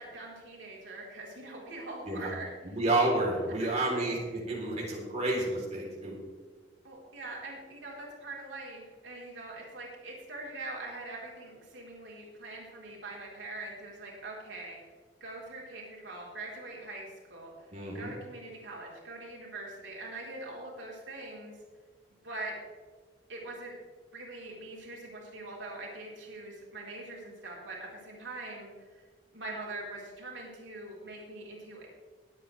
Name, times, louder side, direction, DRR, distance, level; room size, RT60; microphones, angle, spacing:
voice 1, 0.0-2.5 3.6-4.0 6.8-14.8 15.2-21.5 22.2-22.6 23.3-23.7 24.1-29.0 29.3-31.9, right 2 dB, 80° right, -3 dB, 4.0 m, -43 dB
voice 2, 2.6-6.2 17.7-18.1, right 2 dB, 40° right, -4 dB, 3.6 m, -30 dB
22.0 x 8.5 x 3.4 m, 1.5 s
head